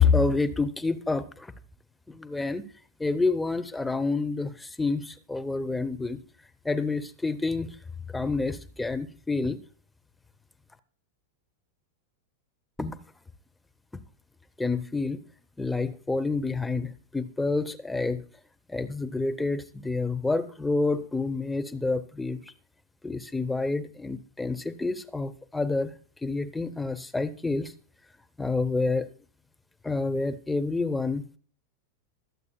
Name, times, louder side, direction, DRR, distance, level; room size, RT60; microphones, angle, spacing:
voice 1, 0.0-1.5 2.1-2.7 3.0-6.2 6.6-7.8 8.1-9.6 12.8-13.0 14.6-15.2 15.6-18.2 18.7-22.4 23.0-25.9 26.2-27.7 28.4-29.1 29.8-31.3, left 3 dB, 5° left, 9 dB, 0.8 m, -28 dB
22.0 x 8.1 x 2.3 m, 0.41 s
figure-of-eight pair, 90°, 0 cm